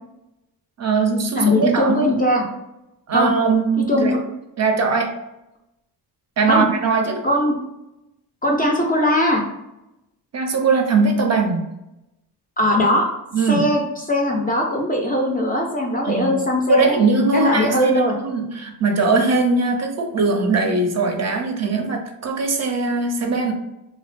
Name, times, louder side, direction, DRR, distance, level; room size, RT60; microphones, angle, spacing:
voice 1, 0.8-2.0 3.1-4.2 4.6-5.1 6.4-7.2 10.3-11.7 13.3-13.7 16.0-16.4 16.7-17.9 18.2-23.5, right 4 dB, 40° right, 3 dB, 0.5 m, -20 dB
voice 2, 1.4-2.5 3.1-3.3 3.9-4.2 6.5-6.7 7.2-7.6 8.4-9.4 12.6-13.1 13.5-13.8 14.1-17.0 17.3-18.2, left 1 dB, 25° left, 0 dB, 0.4 m, -19 dB
2.6 x 2.1 x 2.4 m, 0.91 s
cardioid pair, 90°, 40 cm